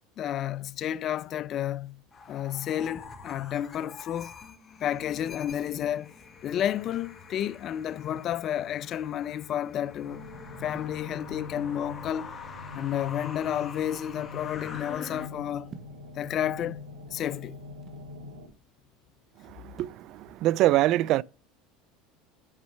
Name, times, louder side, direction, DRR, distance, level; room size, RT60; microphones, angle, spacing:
voice 1, 0.2-2.0 2.3-4.3 4.8-6.1 6.4-10.2 10.6-12.3 12.7-15.7 16.2-16.8 17.1-17.6, left 10 dB, 45° left, 0.5 m, -31 dB
sound 1, 2.1-15.3, left 5 dB, 30° left, 1.8 m, -45 dB
sound 2, 10.0-18.5, left 3 dB, 80° right, 6.0 m, -44 dB
sound 3, 15.7-16.1 16.9-18.1 19.8-20.1, right 5 dB, 35° right, 1.4 m, -48 dB
voice 2, 20.4-21.2, right 15 dB, 55° right, 0.4 m, -22 dB
9.9 x 5.4 x 6.2 m
supercardioid pair, 95°, 0 cm